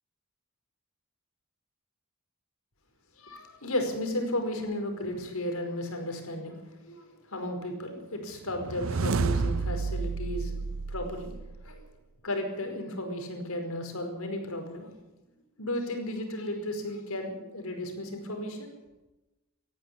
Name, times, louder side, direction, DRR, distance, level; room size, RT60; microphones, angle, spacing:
voice 1, 3.2-11.3 11.6-11.8 12.2-14.9 15.6-18.7, left 1 dB, 75° left, 5 dB, 5.1 m, -34 dB
sound 1, 8.5-11.8, right 4 dB, 65° right, 0.6 m, -30 dB
18.5 x 14.5 x 9.7 m, 1.0 s
head